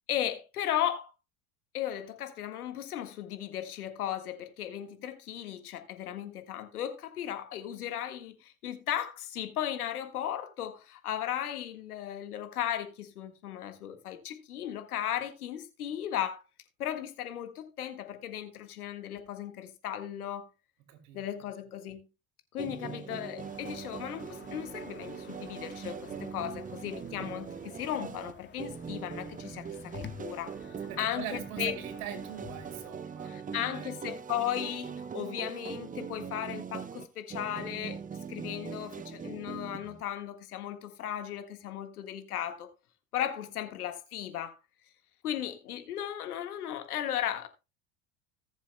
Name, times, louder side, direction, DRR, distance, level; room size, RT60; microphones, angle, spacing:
voice 1, 0.1-1.1 1.7-16.4 16.8-20.5 21.1-22.1 22.5-29.9 30.2-31.8 33.2-38.0 38.3-42.7 43.1-44.5 45.2-47.5, left 11 dB, 85° left, 1.7 m, -36 dB
voice 2, 20.9-21.2 30.9-34.0, right 9 dB, 70° right, 2.8 m, -42 dB
sound 1, 22.6-40.0, right 6 dB, 20° right, 0.6 m, -41 dB
sound 2, 23.4-32.9, left 7 dB, 25° left, 1.2 m, -51 dB
Brass instrument, 30.3-34.2, right 8 dB, 5° left, 5.3 m, -59 dB
19.0 x 7.2 x 2.2 m
hypercardioid pair, 80°, 43 cm